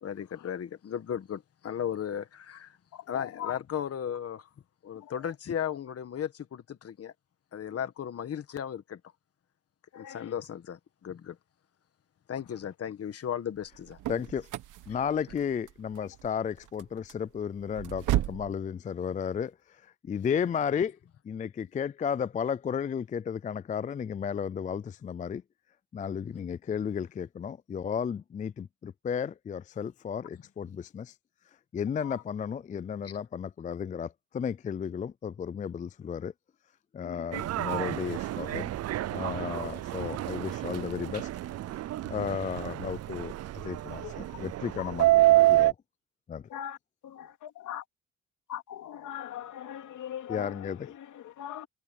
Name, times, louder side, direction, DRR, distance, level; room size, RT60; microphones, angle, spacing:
voice 1, 0.0-2.8 3.1-4.5 4.8-7.1 7.5-9.0 9.9-11.4 12.3-14.0 33.0-33.1, left 9 dB, 50° left, 1.7 m, -35 dB
voice 2, 2.9-3.6 5.0-5.4 9.9-10.4 12.5-12.6 16.0-16.1 32.0-32.2 37.0-37.5 44.0-44.4 44.8-44.9 46.5-46.8 47.0-47.8 48.5-51.7, left 11 dB, 75° left, 3.1 m, -41 dB
sound 1, 13.6-18.5, right 14 dB, 80° right, 1.4 m, -35 dB
voice 3, 14.1-14.5 14.9-21.0 21.2-25.4 25.9-31.1 31.7-36.3 36.9-38.7 39.1-41.3 42.1-43.3 43.6-44.0 44.4-45.8 46.3-46.4 50.3-50.8, left 7 dB, 25° left, 0.4 m, -33 dB
Subway metro underground, 37.3-45.7, right 16 dB, 55° right, 0.5 m, -28 dB
cardioid pair, 90°, 30 cm